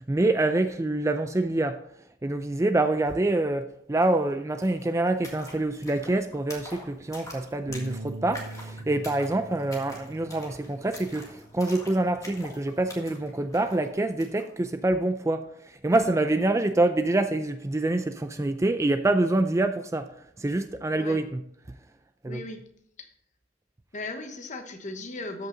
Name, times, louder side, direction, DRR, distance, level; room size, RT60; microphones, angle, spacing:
voice 1, 0.0-21.8 22.2-22.4, right 2 dB, 15° right, 9 dB, 0.4 m, -26 dB
sound 1, 4.0-4.1 4.3-14.5, left 2 dB, 20° left, 1.8 m, -46 dB
sound 2, 7.7-13.9, right 2 dB, 75° right, 0.8 m, -44 dB
voice 2, 22.3-22.6 23.0-23.1 23.9-25.5, left 2 dB, 40° left, 6 dB, 1.1 m, -37 dB
13.0 x 5.7 x 3.9 m, 0.70 s
head